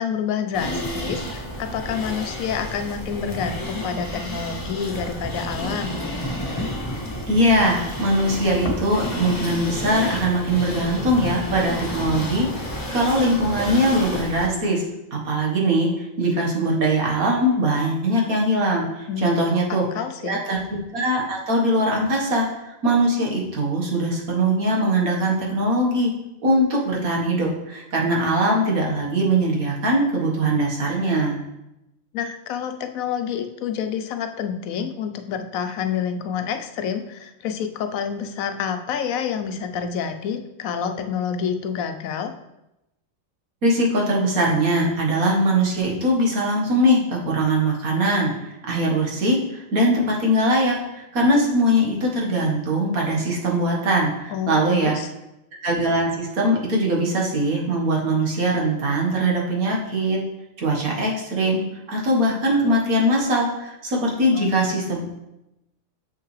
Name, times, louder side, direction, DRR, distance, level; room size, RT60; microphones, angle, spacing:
voice 1, 0.0-6.0 19.1-19.4 19.7-20.4 32.1-42.3 54.3-55.1 64.3-64.6, left 7 dB, 80° left, 8 dB, 1.0 m, -28 dB
sound 1, 0.5-14.5, equal, 30° left, 1.0 m, -30 dB
voice 2, 7.3-14.8 15.1-19.9 20.2-26.1 26.4-31.4 43.6-55.0 55.6-60.2 60.6-61.6 61.9-65.1, right 1 dB, 85° right, -1 dB, 1.9 m, -21 dB
7.1 x 5.7 x 3.2 m, 0.90 s
omnidirectional pair, 1.5 m